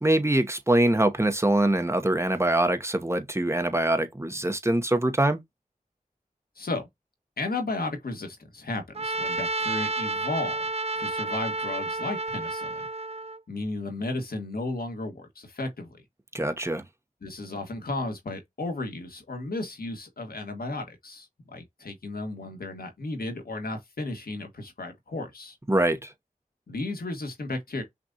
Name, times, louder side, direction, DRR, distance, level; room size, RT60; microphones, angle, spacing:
voice 1, 0.0-5.4 16.3-16.8 25.7-26.1, right 1 dB, 20° right, 0.9 m, -24 dB
voice 2, 6.6-6.9 7.4-10.7 11.0-12.7 13.5-16.0 17.2-25.6 26.7-27.8, left 2 dB, 90° left, 1.5 m, -34 dB
Trumpet, 8.9-13.4, right 3 dB, 45° right, 0.5 m, -30 dB
5.9 x 2.3 x 2.7 m
cardioid pair, 40°, 15 cm